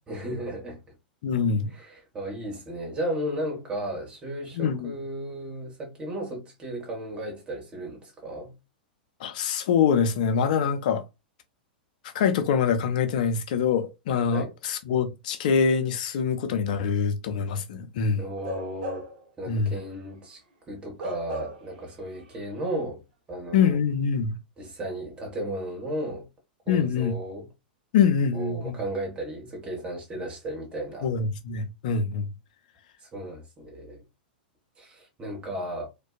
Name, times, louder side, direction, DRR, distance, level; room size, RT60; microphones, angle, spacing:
voice 1, 0.1-0.8 1.7-8.5 14.3-14.5 18.2-19.1 19.4-20.4 20.7-23.0 23.3-23.8 24.6-26.3 26.7-27.5 28.3-31.1 33.0-34.0 34.8-35.9, right 1 dB, 20° right, 1.1 m, -34 dB
voice 2, 1.2-1.7 4.5-4.9 9.2-11.0 12.1-18.3 19.5-19.7 23.5-24.3 26.7-27.2 27.9-28.8 31.0-32.3, left 6 dB, 60° left, 0.5 m, -24 dB
Bark / Livestock farm animals working animals, 18.4-19.3 19.7-19.9 21.0-21.8 22.1-22.3, right 1 dB, 60° right, 0.9 m, -36 dB
2.6 x 2.2 x 2.2 m
hypercardioid pair, 100°, 5 cm